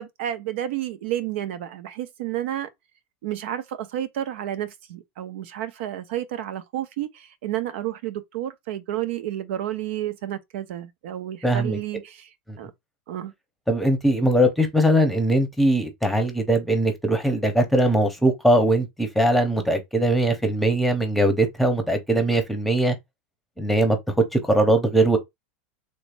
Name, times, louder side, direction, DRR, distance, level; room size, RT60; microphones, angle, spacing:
voice 1, 0.0-2.7 3.2-12.7 13.1-13.3, right 12 dB, 70° right, 0.6 m, -31 dB
voice 2, 11.4-11.8 12.5-12.6 13.7-22.9 23.6-25.2, right 1 dB, ahead, 1.0 m, -21 dB
3.3 x 3.0 x 2.6 m
hypercardioid pair, 105°, 7 cm